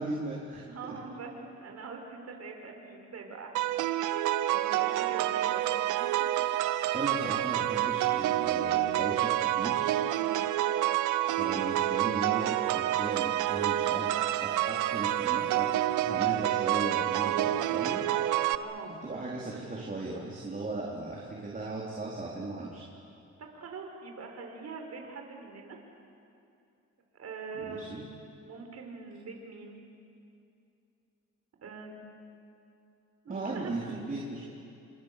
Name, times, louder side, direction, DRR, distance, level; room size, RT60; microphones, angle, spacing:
voice 1, 0.0-0.6 6.9-9.9 11.3-18.0 19.0-22.8 27.5-28.0 33.3-34.5, right 2 dB, 25° right, -3 dB, 4.3 m, -37 dB
voice 2, 0.6-6.2 6.6-6.8 10.1-10.5 18.4-19.0 23.4-25.8 27.1-28.0 28.4-29.8 31.6-32.0 33.2-33.7, right 4 dB, 55° right, 2 dB, 5.3 m, -43 dB
sound 1, 3.5-18.5, right 14 dB, 85° right, 0.9 m, -28 dB
28.5 x 27.0 x 7.0 m, 2.6 s
cardioid pair, 90°, 30 cm